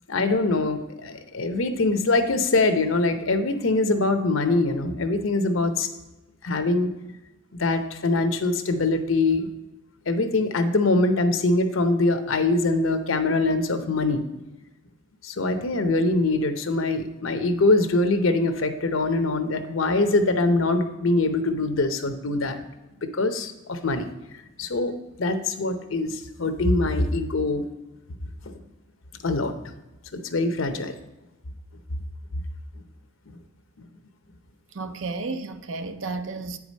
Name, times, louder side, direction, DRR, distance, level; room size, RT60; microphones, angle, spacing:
voice 1, 0.1-5.9 6.4-6.9 7.5-9.5 10.1-14.3 15.2-22.6 23.0-24.1 24.6-24.9 25.2-27.7 28.5-28.6 29.2-29.5 30.1-30.9, left 2 dB, 80° left, 0.8 m, -23 dB
voice 2, 34.7-36.6, right 3 dB, 75° right, 0.6 m, -32 dB
9.0 x 4.8 x 5.3 m
head